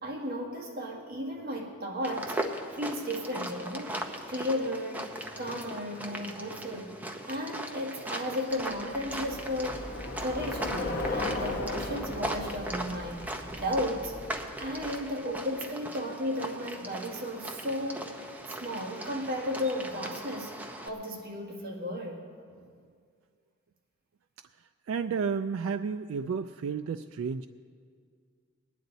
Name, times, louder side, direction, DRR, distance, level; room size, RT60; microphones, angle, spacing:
voice 1, 0.0-2.4 2.7-7.0 7.3-9.9 10.2-14.2 14.6-18.1 18.6-20.6 20.8-22.3, left 1 dB, 50° right, -1 dB, 1.8 m, -34 dB
sound 1, 2.0-20.9, right 1 dB, 10° right, 0.8 m, -39 dB
Bicycle, 8.7-15.2, left 2 dB, 45° left, 1.1 m, -37 dB
voice 2, 24.9-27.5, right 6 dB, 85° right, 9 dB, 0.3 m, -31 dB
20.5 x 9.7 x 4.0 m, 2.1 s
head